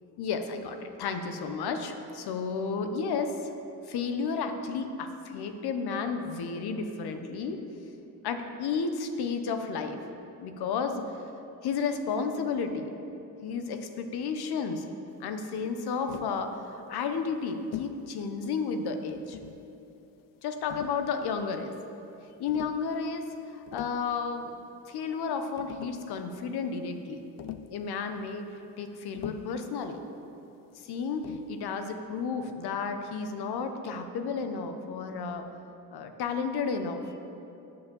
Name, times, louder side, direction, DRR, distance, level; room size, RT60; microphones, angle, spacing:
voice 1, 0.2-3.5 3.9-7.6 8.2-10.0 10.4-11.0 11.6-12.9 13.4-14.9 15.2-19.4 20.4-21.7 22.4-24.6 24.9-27.2 27.7-28.4 28.8-30.0 30.7-35.4 35.9-37.1, left 5 dB, 80° left, 7 dB, 1.0 m, -32 dB
Tap, 16.1-16.4 17.7-18.0 19.1-19.6 20.7-21.5 22.5-22.8 23.5-24.0 25.2-25.3 25.6-26.1 27.4-27.8 29.2-29.6 31.2-31.6, left 11 dB, 60° left, 0.5 m, -42 dB
9.6 x 7.1 x 7.0 m, 2.9 s
cardioid pair, 125°, 38 cm